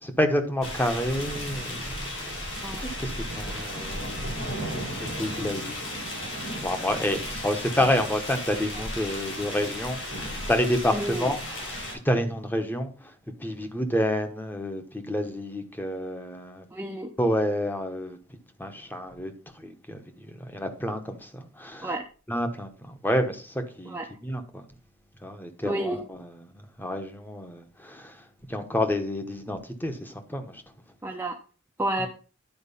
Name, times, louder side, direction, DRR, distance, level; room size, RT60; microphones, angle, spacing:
voice 1, 0.0-2.4 2.8-5.8 6.1-6.3 6.6-11.4 11.7-11.8 12.0-13.1 13.4-16.7 17.2-18.2 18.6-21.9 22.3-24.6 25.2-26.2 26.5-30.6, left 1 dB, 10° left, 1.0 m, -29 dB
sound 1, 0.6-11.9, left 1 dB, 65° left, 4.5 m, -34 dB
voice 2, 10.9-11.3 16.7-17.1 21.8-22.1 23.9-24.1 25.6-26.0 31.0-31.4 31.8-32.1, right 1 dB, 10° right, 0.6 m, -30 dB
10.5 x 4.6 x 5.5 m
head